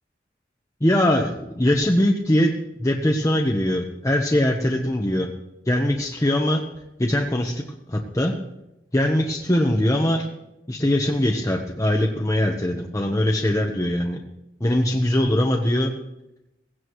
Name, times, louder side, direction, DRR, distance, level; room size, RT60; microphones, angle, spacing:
voice 1, 0.8-5.3 5.7-6.6 7.0-8.3 8.9-10.3 10.7-14.2 14.6-15.9, left 1 dB, 20° left, 2 dB, 1.0 m, -21 dB
17.5 x 16.0 x 3.1 m, 0.90 s
head